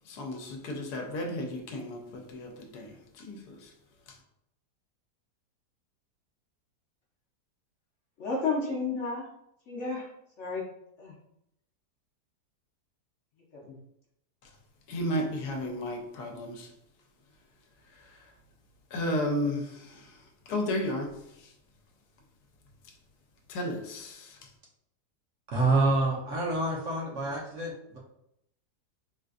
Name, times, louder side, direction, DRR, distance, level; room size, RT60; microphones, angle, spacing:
voice 1, 0.1-2.9 3.3-3.4 14.9-16.7 18.9-19.6 20.5-21.1 23.5-24.3, left 1 dB, 80° left, 1.2 m, -32 dB
voice 2, 8.2-9.3 9.7-10.1 10.4-10.7 11.0-11.1 13.5-13.8, left 4 dB, 60° left, 0.8 m, -32 dB
voice 3, 25.5-28.0, right 2 dB, 60° right, 1.0 m, -27 dB
3.8 x 2.4 x 2.4 m
omnidirectional pair, 1.7 m